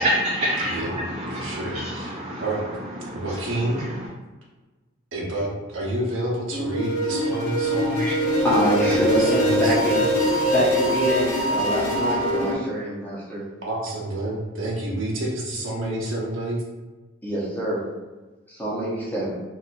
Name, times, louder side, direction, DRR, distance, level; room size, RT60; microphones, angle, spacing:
voice 1, 0.0-4.1, equal, 30° right, -3 dB, 0.4 m, -28 dB
voice 2, 1.4-2.1 2.4-2.6 3.1-3.8 5.1-8.0 8.7-10.0 13.6-16.6, right 1 dB, 75° right, -4 dB, 1.0 m, -29 dB
sound 1, 6.5-12.5, equal, 85° left, 1.0 m, -23 dB
voice 3, 8.4-10.1 10.5-13.4 17.2-17.8 18.5-19.3, right 1 dB, 10° left, -7 dB, 0.8 m, -25 dB
4.1 x 2.5 x 2.5 m, 1.2 s
head